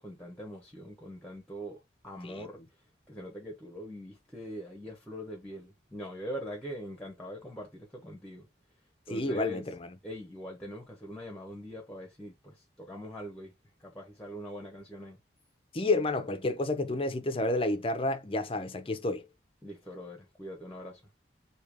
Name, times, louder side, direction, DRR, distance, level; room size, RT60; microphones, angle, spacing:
voice 1, 0.0-2.6 3.1-8.5 9.1-9.6 10.0-13.5 13.8-15.2 19.6-21.0, equal, 5° left, 1.0 m, -42 dB
voice 2, 9.1-9.9 15.7-19.2, left 2 dB, 30° left, 0.6 m, -30 dB
3.4 x 2.9 x 4.7 m
head